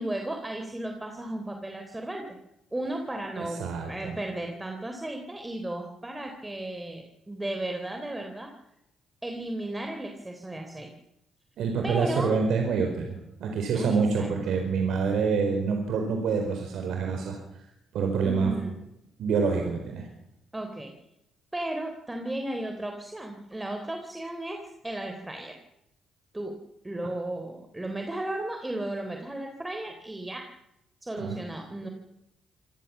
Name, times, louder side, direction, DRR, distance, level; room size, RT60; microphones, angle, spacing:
voice 1, 0.0-2.4 2.7-8.5 9.2-10.9 11.8-12.3 13.7-14.3 18.2-18.8 20.5-20.9 21.5-25.6 26.3-26.5 26.8-30.5 31.0-31.9, right 1 dB, 15° right, 4 dB, 3.6 m, -34 dB
voice 2, 3.4-4.2 11.6-17.4 17.9-18.5 19.2-20.1 31.2-31.4, right 5 dB, 75° right, 4 dB, 4.7 m, -27 dB
26.0 x 18.0 x 7.3 m, 0.87 s
cardioid pair, 90°, 0 cm